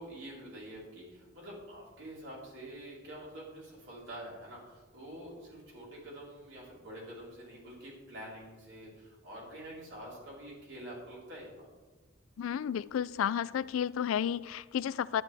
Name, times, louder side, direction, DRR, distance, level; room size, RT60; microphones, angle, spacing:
voice 1, 0.0-11.7, right 1 dB, 60° right, -5 dB, 4.0 m, -47 dB
voice 2, 12.4-15.2, left 9 dB, 80° left, 19 dB, 0.3 m, -32 dB
11.5 x 10.5 x 3.4 m, 1.2 s
head